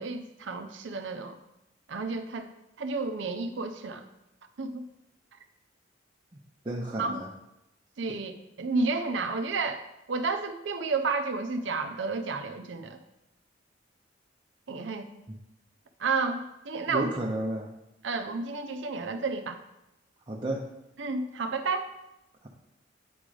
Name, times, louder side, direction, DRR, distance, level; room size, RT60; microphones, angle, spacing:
voice 1, 0.0-1.4 1.9-2.5 2.8-4.1 4.6-4.9 7.0-7.2 8.0-13.0 14.7-15.1 16.0-17.1 18.0-19.6 21.0-21.9, right 4 dB, 70° right, 6 dB, 0.6 m, -31 dB
voice 2, 6.6-7.3 16.9-17.7 20.3-20.6 22.4-22.5, right 1 dB, 25° right, -1 dB, 0.6 m, -32 dB
8.7 x 3.8 x 4.8 m, 0.89 s
head